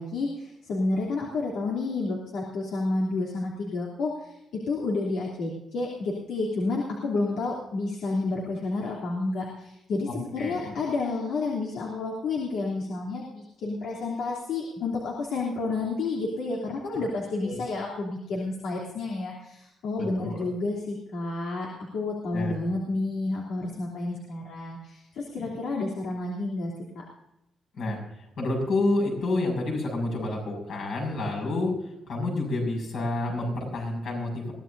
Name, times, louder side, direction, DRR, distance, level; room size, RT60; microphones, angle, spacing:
voice 1, 0.0-21.7 21.9-27.0, left 3 dB, 80° left, -4 dB, 3.2 m, -30 dB
voice 2, 10.1-10.7 17.4-17.5 20.0-20.5 22.3-22.5 25.4-25.5 27.8-34.5, left 2 dB, 60° left, 2 dB, 6.5 m, -29 dB
22.5 x 15.5 x 2.7 m, 0.87 s
cardioid pair, 175°, 0 cm